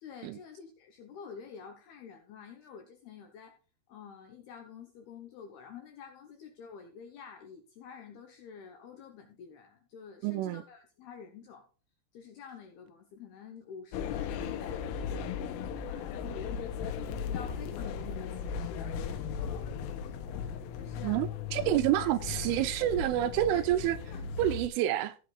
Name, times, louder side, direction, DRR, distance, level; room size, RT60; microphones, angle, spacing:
voice 1, 0.0-3.5 3.9-11.7 12.1-16.7 17.2-18.9 19.4-19.7 20.7-21.2 22.0-22.1 23.5-23.7 24.4-24.6, left 6 dB, 75° left, 2.4 m, -49 dB
voice 2, 10.2-10.6 21.0-24.0 24.4-25.2, right 13 dB, 85° right, 2.9 m, -28 dB
sound 1, 13.9-24.7, left 7 dB, 90° left, 3.5 m, -37 dB
16.5 x 7.9 x 2.4 m
omnidirectional pair, 5.8 m